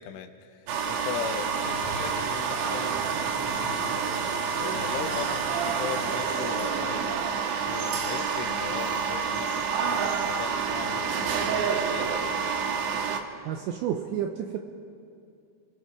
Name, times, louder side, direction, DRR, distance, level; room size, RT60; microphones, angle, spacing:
voice 1, 0.0-7.4 7.6-12.5, left 8 dB, 80° left, 7 dB, 3.2 m, -39 dB
sound 1, 0.7-13.2, right 6 dB, 70° right, 3.2 m, -28 dB
voice 2, 13.5-14.6, right 9 dB, 90° right, 5 dB, 2.6 m, -30 dB
30.0 x 20.0 x 5.0 m, 2.4 s
omnidirectional pair, 6.0 m